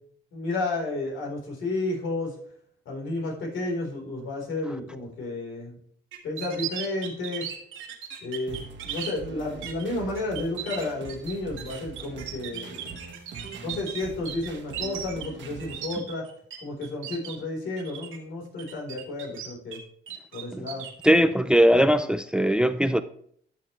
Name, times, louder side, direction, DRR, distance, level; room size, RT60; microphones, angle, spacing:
voice 1, 0.3-2.3 2.9-5.8 6.2-7.5 8.2-13.0 13.6-16.2 16.6-19.8 20.3-20.9, left 2 dB, 75° left, 4.0 m, -32 dB
sound 1, 6.1-9.1 9.6-9.8 10.1-16.6 16.8-17.3 17.8-18.2 18.6-19.8 20.1-21.1, right 10 dB, 90° right, 2.1 m, -37 dB
sound 2, 8.5-15.9, right 5 dB, 70° right, 1.7 m, -43 dB
voice 2, 21.0-23.0, equal, 5° right, 0.4 m, -20 dB
12.5 x 6.5 x 3.2 m
cardioid pair, 90°, 20 cm